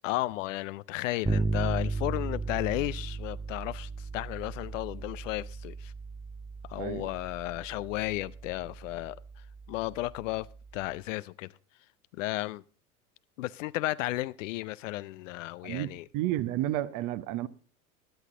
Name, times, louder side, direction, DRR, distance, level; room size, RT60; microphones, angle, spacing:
voice 1, 0.0-5.9 6.7-9.2 9.7-10.5 10.7-11.5 12.1-12.6 13.4-16.1, left 18 dB, 60° left, 0.7 m, -34 dB
Bass guitar, 1.2-10.9, right 4 dB, 10° right, 0.8 m, -36 dB
voice 2, 6.8-7.1 15.6-17.5, right 14 dB, 45° right, 1.1 m, -31 dB
17.0 x 11.0 x 3.8 m
hypercardioid pair, 85°, 44 cm